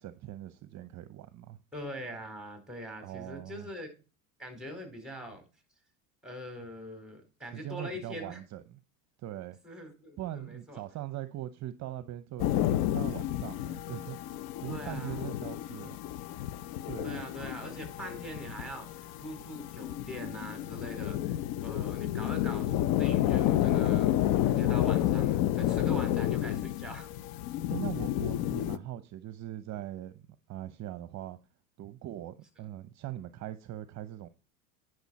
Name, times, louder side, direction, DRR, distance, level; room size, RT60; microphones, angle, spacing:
voice 1, 0.0-1.6 3.0-3.7 7.5-8.8 9.2-9.6 10.2-14.2 14.6-16.0 16.8-17.2 25.8-26.2 27.7-31.4 31.8-34.3, right 13 dB, 40° right, 0.8 m, -41 dB
voice 2, 1.7-3.9 4.4-5.4 6.2-8.4 9.6-10.8 14.7-15.3 17.0-24.1 24.4-27.1, equal, ahead, 4.7 m, -43 dB
sound 1, 12.4-28.8, left 13 dB, 60° left, 0.8 m, -30 dB
10.5 x 6.4 x 4.2 m
supercardioid pair, 100°, 41 cm